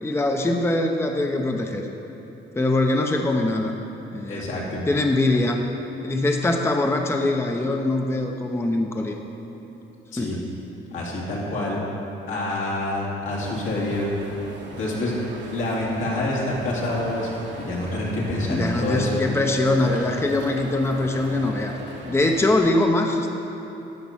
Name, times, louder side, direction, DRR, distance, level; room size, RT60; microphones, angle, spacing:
voice 1, 0.0-1.8 2.6-3.7 4.1-4.5 4.9-5.7 6.0-9.1 10.2-10.5 18.5-21.8 22.1-23.3, left 2 dB, 10° left, 3 dB, 0.7 m, -22 dB
voice 2, 4.3-4.8 10.1-10.3 10.9-11.8 12.3-14.1 14.7-15.1 15.5-19.2 19.8-20.0, left 1 dB, 80° left, -5 dB, 2.5 m, -27 dB
sound 1, 13.3-22.6, right 3 dB, 65° right, 1.5 m, -39 dB
13.0 x 5.1 x 5.8 m, 3.0 s
cardioid pair, 90°, 20 cm